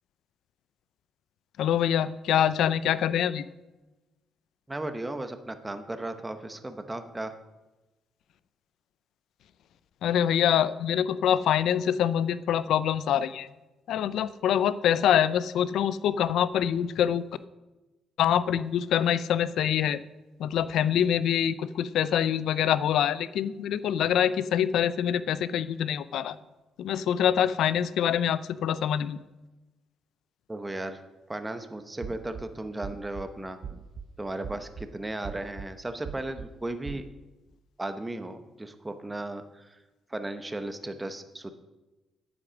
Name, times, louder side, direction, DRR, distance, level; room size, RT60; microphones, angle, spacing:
voice 1, 1.6-3.4 10.0-13.5 13.9-17.2 18.2-20.0 20.4-26.4 26.8-29.2, left 9 dB, 80° left, 16 dB, 0.5 m, -25 dB
voice 2, 4.7-7.3 30.5-31.0 31.3-33.6 34.2-37.1 37.8-39.7 40.1-41.5, right 2 dB, 15° right, 8 dB, 0.9 m, -35 dB
sound 1, 32.0-32.4 32.8-33.2 33.6-34.1 34.4-34.9 35.2-35.7 36.0-36.5 36.8-37.0, right 7 dB, 55° right, 0.8 m, -39 dB
9.8 x 8.6 x 6.3 m, 1.1 s
cardioid pair, 90°, 0 cm